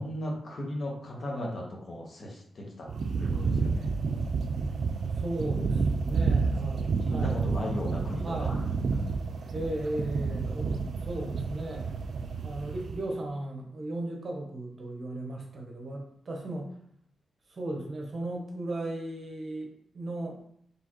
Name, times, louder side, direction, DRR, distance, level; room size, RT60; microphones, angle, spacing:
voice 1, 0.0-2.9 3.2-3.9 6.7-8.6 8.9-9.0, left 1 dB, 45° left, -1 dB, 1.1 m, -36 dB
sound 1, 2.9-13.1, right 4 dB, 60° right, 0.4 m, -30 dB
voice 2, 5.2-8.0 8.2-8.6 9.5-11.9 12.4-16.7 17.5-20.4, right 1 dB, 45° right, 1 dB, 0.9 m, -36 dB
4.4 x 3.3 x 3.0 m, 0.66 s
wide cardioid pair, 130°, 0 cm